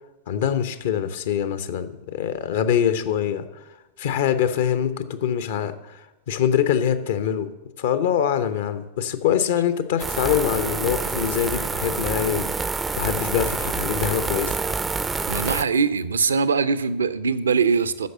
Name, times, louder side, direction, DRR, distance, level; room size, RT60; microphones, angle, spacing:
voice 1, 0.3-3.5 4.0-7.5 7.8-12.6 13.0-14.6, left 9 dB, 55° left, 12 dB, 0.7 m, -24 dB
sound 1, 10.0-15.6, right 4 dB, 15° right, 0.4 m, -27 dB
voice 2, 15.3-18.1, right 5 dB, 70° right, 14 dB, 0.5 m, -22 dB
9.4 x 6.5 x 7.7 m, 1.1 s
figure-of-eight pair, 90°, 0 cm